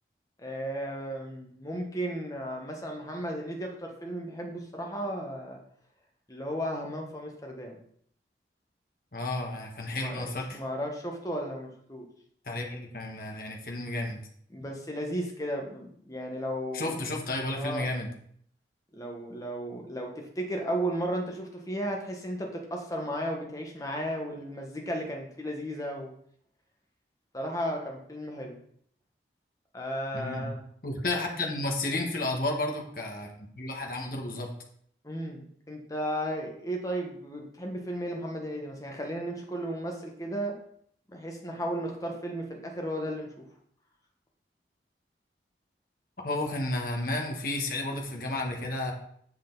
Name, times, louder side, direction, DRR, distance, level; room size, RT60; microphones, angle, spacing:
voice 1, 0.4-5.6 6.3-7.8 9.9-12.1 14.5-16.9 17.5-17.9 18.9-26.1 27.3-28.6 29.7-30.6 35.0-40.5 41.1-43.4, equal, 20° left, 1 dB, 1.4 m, -34 dB
voice 2, 9.1-10.6 12.4-14.2 16.7-18.1 30.1-30.5 30.8-34.5 46.2-48.9, left 2 dB, 50° left, 1 dB, 1.4 m, -32 dB
8.1 x 6.6 x 3.9 m, 0.64 s
head